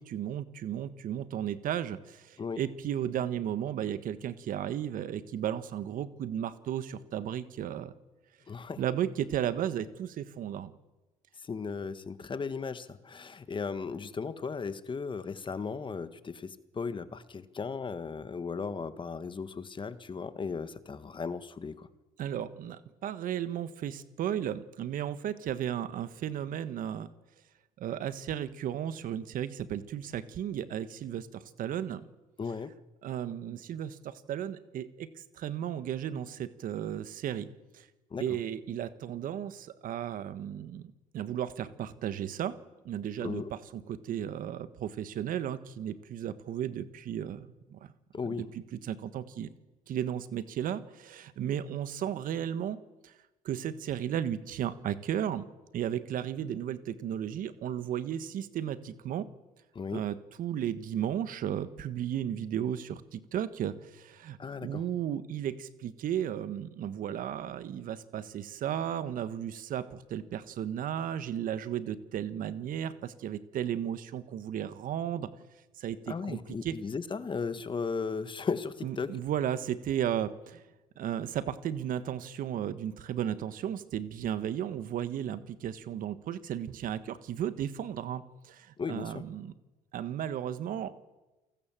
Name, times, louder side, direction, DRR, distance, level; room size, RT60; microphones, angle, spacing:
voice 1, 0.0-7.9 8.8-10.7 22.2-27.1 27.8-32.0 33.0-35.1 35.4-37.5 37.7-37.9 38.2-40.8 41.1-42.5 42.8-47.8 48.2-49.5 49.9-52.8 53.0-53.1 53.4-55.4 55.7-59.3 59.9-75.3 75.8-76.7 78.8-80.6 81.0-89.5 89.9-90.9, right 10 dB, 65° right, 13 dB, 1.5 m, -34 dB
voice 2, 8.5-8.8 11.4-21.9 32.4-32.7 38.1-38.2 43.2-43.5 48.1-48.5 59.7-60.0 64.4-64.8 76.1-79.1 88.8-89.2, left 5 dB, 35° left, 12 dB, 1.6 m, -36 dB
29.0 x 18.5 x 7.6 m, 1.1 s
cardioid pair, 85°, 15 cm